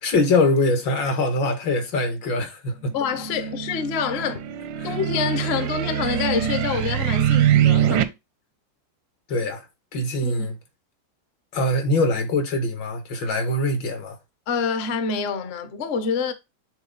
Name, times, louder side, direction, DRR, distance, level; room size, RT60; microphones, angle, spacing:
voice 1, 0.0-2.9 4.8-4.9 9.3-9.7 9.9-10.6 11.5-14.2, left 2 dB, 75° left, 2.0 m, -23 dB
voice 2, 2.9-4.4 4.8-8.1 10.2-10.5 14.5-16.3, left 6 dB, 55° left, 0.7 m, -26 dB
sound 1, 3.1-8.0, right 10 dB, 85° right, 1.4 m, -23 dB
7.0 x 3.5 x 3.8 m
omnidirectional pair, 2.0 m